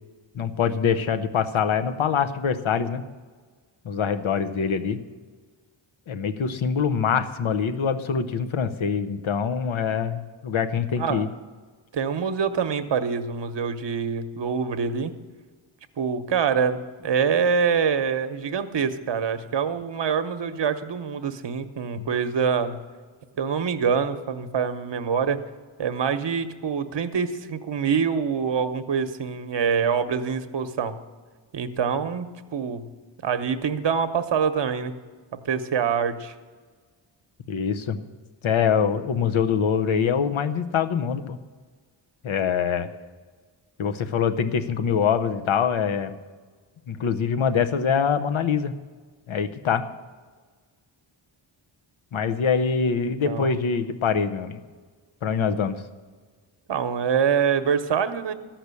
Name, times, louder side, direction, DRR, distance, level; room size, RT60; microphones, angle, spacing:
voice 1, 0.3-3.0 3.8-5.0 6.1-11.3 22.0-22.1 37.5-38.0 38.4-41.4 42.2-42.9 43.8-46.2 46.9-48.7 49.3-49.9 52.1-54.6 55.2-55.8, left 6 dB, 70° left, 10 dB, 0.9 m, -24 dB
voice 2, 11.0-11.3 11.9-15.1 16.0-22.8 23.4-25.4 25.8-31.0 31.5-32.3 32.5-32.8 33.2-34.9 35.4-36.3 53.3-53.6 56.7-58.3, right 6 dB, 60° right, 10 dB, 0.9 m, -25 dB
13.5 x 6.0 x 8.3 m, 1.5 s
cardioid pair, 65°, 49 cm